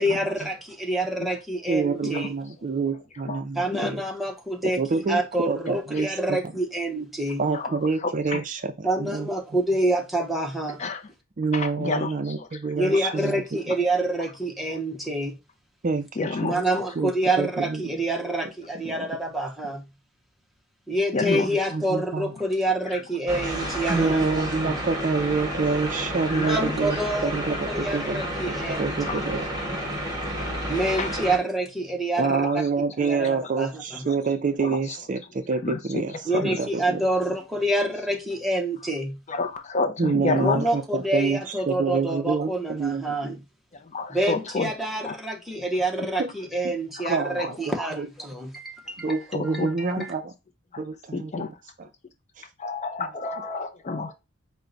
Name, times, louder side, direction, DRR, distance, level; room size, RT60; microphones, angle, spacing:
voice 1, 0.0-2.3 3.5-7.4 8.8-10.8 12.8-15.4 16.4-19.9 20.9-24.3 24.6-24.8 26.4-29.2 30.7-32.5 33.0-34.1 36.2-39.2 40.4-43.4 44.1-49.2 49.4-50.1, right 1 dB, ahead, 0.7 m, -27 dB
voice 2, 1.7-4.0 4.6-5.2 5.5-6.4 7.4-9.3 11.4-13.3 15.8-16.6 17.0-17.1 17.4-17.8 18.8-19.1 21.3-22.3 23.9-28.2 28.8-29.8 32.2-37.0 40.0-43.4 46.2-46.3 46.6-46.7 47.1-47.5 47.9-48.1 49.0-50.3 50.8-51.9 52.4-52.5 53.0-53.1, right 4 dB, 35° right, 0.4 m, -27 dB
voice 3, 11.5-12.1 12.4-12.5 16.2-16.5 21.1-21.5 26.3-26.8 28.2-28.3 29.1-29.2 31.0-31.1 32.2-32.5 34.6-34.8 35.6-36.0 39.3-40.6 43.9-44.7 45.0-45.1 47.0-47.5 49.6-49.7 51.1-51.5 52.6-54.1, left 3 dB, 35° left, 0.4 m, -29 dB
sound 1, 23.3-31.4, equal, 20° right, 1.3 m, -30 dB
4.6 x 2.1 x 3.8 m
head